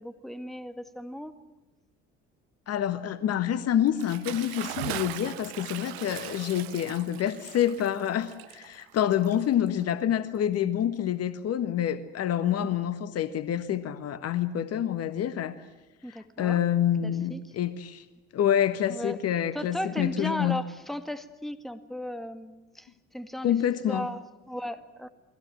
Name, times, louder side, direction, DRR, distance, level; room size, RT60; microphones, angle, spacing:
voice 1, 0.0-1.3 16.0-16.6 17.0-17.4 18.9-19.2 19.5-23.6 23.9-25.1, equal, ahead, 11 dB, 2.0 m, -36 dB
voice 2, 2.7-15.6 16.1-18.0 18.3-20.6 23.4-24.1, left 10 dB, 45° left, 13 dB, 1.5 m, -27 dB
Bathtub (filling or washing) / Splash splatter, 3.9-9.8, right 18 dB, 65° right, 0.9 m, -40 dB
30.0 x 21.0 x 7.6 m, 1.1 s
figure-of-eight pair, 50°, 34 cm